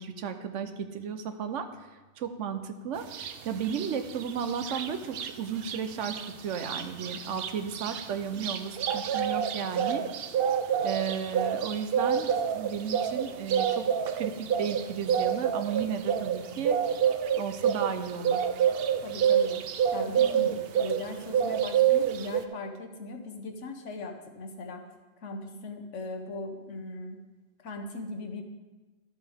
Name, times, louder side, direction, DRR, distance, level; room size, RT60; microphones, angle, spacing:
voice 1, 0.0-1.7 2.2-10.0 10.8-13.8 14.1-16.8 17.4-18.5, right 7 dB, 85° right, 8 dB, 1.1 m, -34 dB
sound 1, 3.1-3.3 3.7-5.3 5.6-5.8 6.0-21.1 21.3-22.4, right 8 dB, 60° right, 0.7 m, -27 dB
voice 2, 19.0-19.6 19.9-24.8 25.2-27.2 27.6-28.4, left 2 dB, 85° left, 4 dB, 1.3 m, -39 dB
12.5 x 8.0 x 3.5 m, 1.2 s
omnidirectional pair, 1.2 m